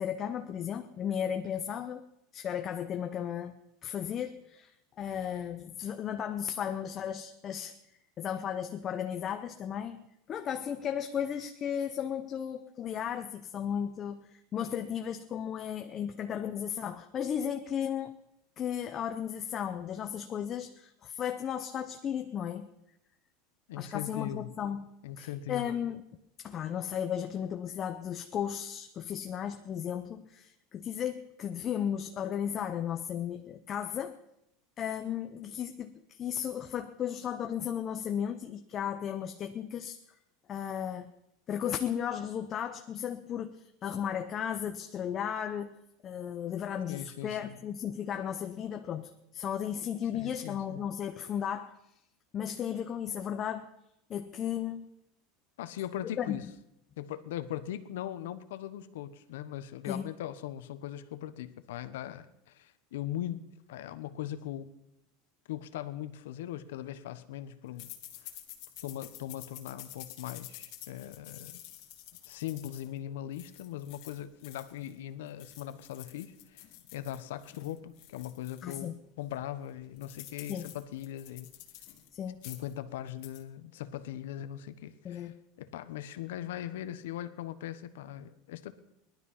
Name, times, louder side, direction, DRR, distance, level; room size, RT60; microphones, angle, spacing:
voice 1, 0.0-2.0 2.3-3.5 3.8-7.7 8.2-10.0 10.3-18.2 18.6-22.7 23.8-24.8 25.2-26.0 26.4-34.2 34.8-40.0 40.5-41.1 41.5-45.8 46.0-51.7 52.3-53.7 54.1-54.8 56.2-56.4 59.9-60.1 78.6-79.0 80.5-80.7 82.1-82.4 85.0-85.3, left 9 dB, 30° left, 6 dB, 0.8 m, -35 dB
voice 2, 23.7-24.5 25.0-25.7 46.9-47.6 50.1-50.8 55.6-56.4 57.0-64.7 65.5-67.9 68.8-71.6 72.2-81.5 82.4-88.8, left 12 dB, 90° left, 12 dB, 1.1 m, -40 dB
sound 1, 67.8-74.9 75.3-78.9 79.3-79.4 79.6-82.1 82.3-82.8 83.1-83.4, left 13 dB, 55° left, 2.1 m, -50 dB
19.0 x 12.0 x 5.7 m, 0.82 s
supercardioid pair, 150°, 0 cm